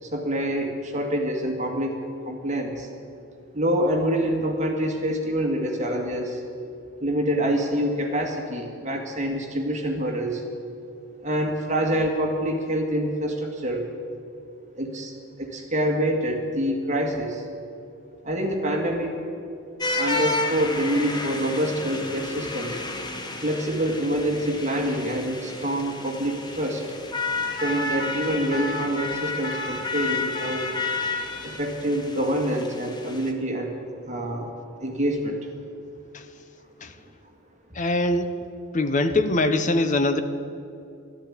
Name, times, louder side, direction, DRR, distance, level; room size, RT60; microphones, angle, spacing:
voice 1, 0.0-2.9 3.5-6.4 7.0-10.4 11.2-13.9 14.8-15.1 15.4-17.5 18.2-19.2 20.0-22.8 23.4-26.8 27.5-30.7 31.4-33.7 34.1-34.5 34.8-35.4, equal, 35° right, 2 dB, 2.0 m, -26 dB
sound 1, 19.8-33.3, left 3 dB, 20° left, 1.1 m, -31 dB
voice 2, 37.7-38.3 38.7-40.2, left 2 dB, 35° left, 9 dB, 0.8 m, -22 dB
13.5 x 12.5 x 8.6 m, 2.7 s
head